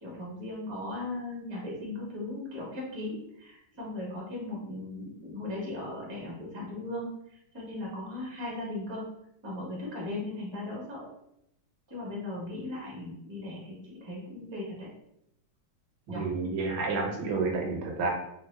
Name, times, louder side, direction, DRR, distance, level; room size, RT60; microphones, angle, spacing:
voice 1, 0.0-9.0 9.4-11.0 11.9-14.9 16.1-16.3, left 2 dB, 35° right, -5 dB, 0.4 m, -37 dB
voice 2, 16.1-18.1, right 4 dB, 75° right, 1 dB, 1.4 m, -30 dB
3.5 x 2.0 x 3.1 m, 0.80 s
omnidirectional pair, 2.3 m